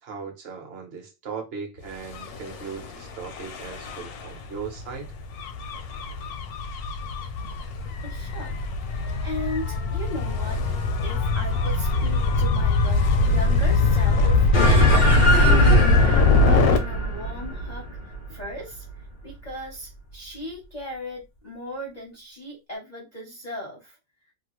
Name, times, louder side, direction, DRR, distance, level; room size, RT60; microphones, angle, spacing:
voice 1, 0.0-5.1, right 6 dB, 45° right, 0.9 m, -38 dB
Gull seagull / Waves surf / Siren, 2.0-16.8, left 3 dB, 70° left, 0.9 m, -22 dB
voice 2, 8.0-8.6 8.9-10.6 11.0-18.8 19.2-24.0, left 1 dB, 40° left, 0.6 m, -37 dB
sound 1, 14.5-19.3, right 1 dB, 85° left, 0.4 m, -22 dB
3.0 x 2.2 x 3.0 m
omnidirectional pair, 2.0 m